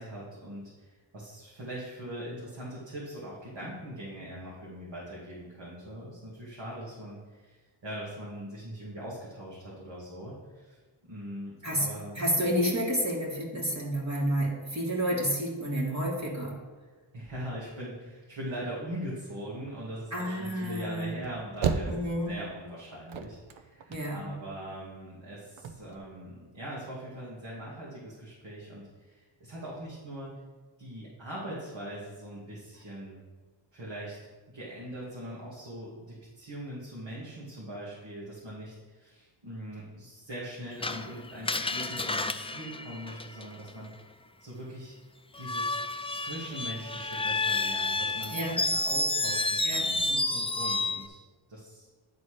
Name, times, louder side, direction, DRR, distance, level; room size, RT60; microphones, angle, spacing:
voice 1, 0.0-10.8 11.1-12.4 17.1-21.9 22.3-30.4 30.8-33.2 33.7-34.2 34.5-43.9 44.4-44.9 45.4-45.8 46.1-51.2 51.5-51.9, right 1 dB, 70° right, -7 dB, 2.3 m, -41 dB
voice 2, 12.2-16.6 20.1-21.2 21.9-22.4 23.9-24.3 48.3-48.6 49.6-49.9, equal, 35° right, -3 dB, 2.3 m, -30 dB
sound 1, 21.2-22.5 22.8-24.4 24.6-24.7 24.9-25.0 25.5-26.0, right 6 dB, 85° right, 0.7 m, -33 dB
Screech, 40.8-43.7 45.3-51.1, left 2 dB, 15° left, 0.4 m, -30 dB
10.5 x 4.1 x 5.0 m, 1.3 s
cardioid pair, 55°, 46 cm